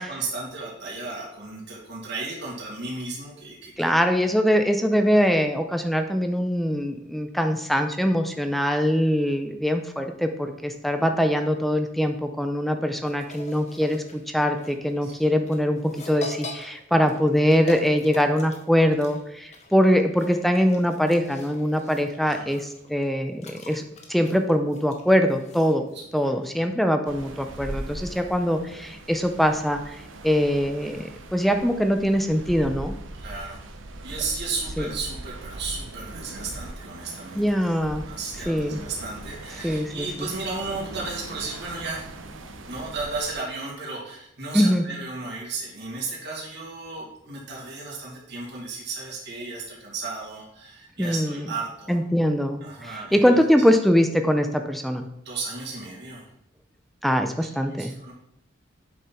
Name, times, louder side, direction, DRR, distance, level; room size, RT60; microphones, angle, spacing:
voice 1, 0.0-3.9 15.0-15.2 22.2-22.6 26.2-26.3 26.6-26.7 33.2-33.7 34.0-37.6 37.9-42.1 42.6-52.0 52.6-53.4 55.2-56.3 57.4-58.1, right 3 dB, 60° right, -3 dB, 2.5 m, -34 dB
voice 2, 3.8-23.8 24.1-25.8 26.1-33.0 34.8-34.9 37.3-38.0 38.5-38.8 39.6-40.3 44.5-44.8 51.0-51.4 51.9-55.1 57.0-57.9, equal, ahead, 6 dB, 0.5 m, -23 dB
sound 1, 13.1-26.0, left 2 dB, 35° left, 1.2 m, -42 dB
sound 2, 27.1-43.3, right 1 dB, 80° right, 0.9 m, -40 dB
8.3 x 5.7 x 4.3 m, 0.78 s
head